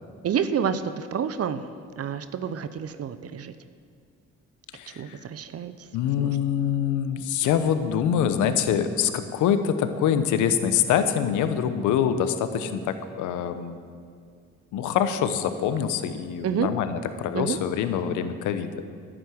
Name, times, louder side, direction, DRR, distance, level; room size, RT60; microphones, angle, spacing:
voice 1, 0.2-3.5 4.9-5.9 6.2-6.4 16.4-16.7 17.3-17.6, right 7 dB, 55° right, 12 dB, 0.8 m, -29 dB
voice 2, 4.7-5.2 5.9-13.8 14.7-18.7, left 8 dB, 80° left, 10 dB, 0.9 m, -25 dB
11.0 x 8.8 x 7.9 m, 2.2 s
supercardioid pair, 60°, 30 cm